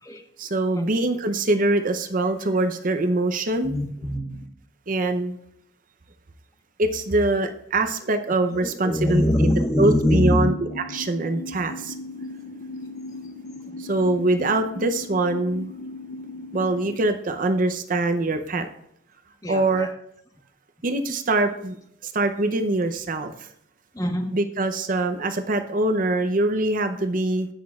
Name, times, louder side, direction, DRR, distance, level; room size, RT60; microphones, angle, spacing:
voice 1, 0.4-3.8 4.9-5.4 6.8-9.5 9.8-10.5 10.9-11.9 13.8-15.8 16.5-18.7 19.5-19.9 20.8-21.8 22.0-23.5 24.3-27.5, right 2 dB, 45° right, 9 dB, 0.6 m, -23 dB
voice 2, 3.6-4.5 8.6-10.5 19.4-19.9 23.9-24.2, left 1 dB, 20° left, 3 dB, 1.2 m, -23 dB
sound 1, 10.1-17.0, left 2 dB, 40° left, 0.4 m, -37 dB
17.0 x 6.1 x 2.4 m, 0.72 s
head